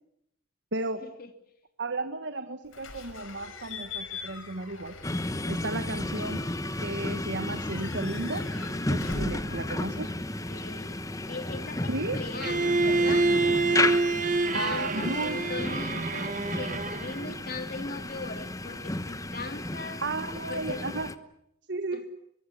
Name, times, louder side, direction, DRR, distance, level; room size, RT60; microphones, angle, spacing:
voice 1, 0.7-1.0 1.8-4.9 5.5-6.4 6.8-8.5 8.8-10.1 11.9-12.2 14.5-15.4 20.0-21.1 21.7-22.1, right 2 dB, 60° right, 8 dB, 1.5 m, -33 dB
Slam / Squeak / Alarm, 2.7-10.7, left 4 dB, 85° left, 4.9 m, -43 dB
sound 1, 5.0-21.1, left 2 dB, 15° left, 1.1 m, -33 dB
voice 2, 9.4-10.0 10.5-11.0 11.3-13.3 14.5-20.0 20.3-20.8 21.9-22.1, left 3 dB, 45° left, 7 dB, 3.2 m, -39 dB
Bowed string instrument, 12.4-17.3, right 3 dB, 40° right, 1.4 m, -27 dB
23.0 x 23.0 x 10.0 m, 0.77 s
head